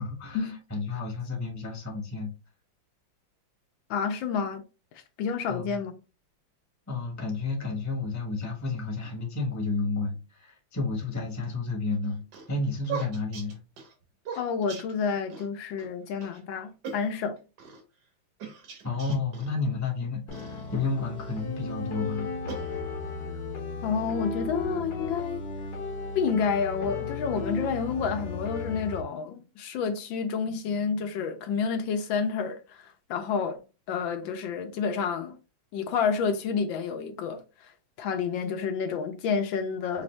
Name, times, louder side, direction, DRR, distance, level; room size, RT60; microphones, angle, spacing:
voice 1, 0.0-2.3 5.5-5.7 6.9-12.2 12.5-13.6 16.2-16.3 18.4-18.5 18.8-22.3, left 3 dB, 10° left, 0.8 m, -31 dB
voice 2, 3.9-4.6 4.9-5.9 14.3-17.4 23.8-25.5 26.1-33.6 33.9-35.4 35.7-40.0, left 6 dB, 75° left, 1.4 m, -29 dB
sound 1, 11.9-15.5 15.8-15.9 16.2-16.4 16.8-17.8 18.4-19.5 20.3-21.4 22.0-23.2, right 5 dB, 60° right, 1.4 m, -41 dB
sound 2, 20.3-29.0, left 3 dB, 55° left, 1.4 m, -35 dB
5.0 x 2.6 x 3.2 m
omnidirectional pair, 2.2 m